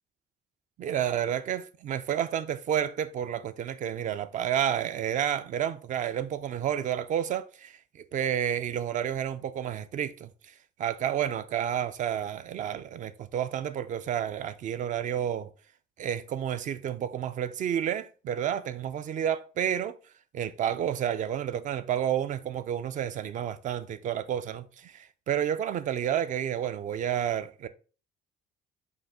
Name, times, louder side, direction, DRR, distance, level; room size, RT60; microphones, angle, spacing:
voice 1, 0.8-10.5 10.8-15.5 16.0-20.0 20.3-27.7, right 10 dB, 50° right, 0.4 m, -30 dB
5.1 x 2.5 x 3.5 m
cardioid pair, 110°, 17 cm